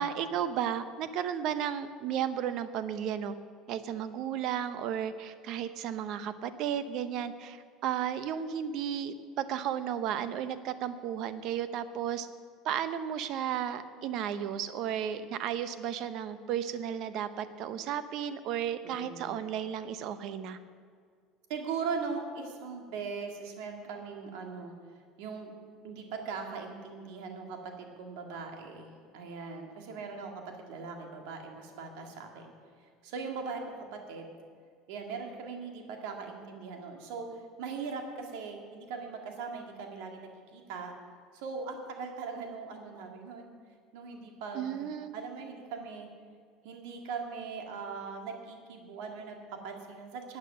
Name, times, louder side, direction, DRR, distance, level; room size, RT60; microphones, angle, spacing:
voice 1, 0.0-3.4 3.7-12.3 12.6-20.6 44.5-45.2, right 9 dB, 60° right, 12 dB, 0.7 m, -34 dB
voice 2, 18.8-19.3 21.5-24.7 25.2-25.5 25.8-32.5 32.8-34.3 34.9-40.9 41.3-43.5 43.9-44.9 45.1-46.1 46.6-50.4, right 5 dB, 80° right, 3 dB, 2.0 m, -40 dB
12.0 x 8.3 x 6.6 m, 2.1 s
supercardioid pair, 130°, 0 cm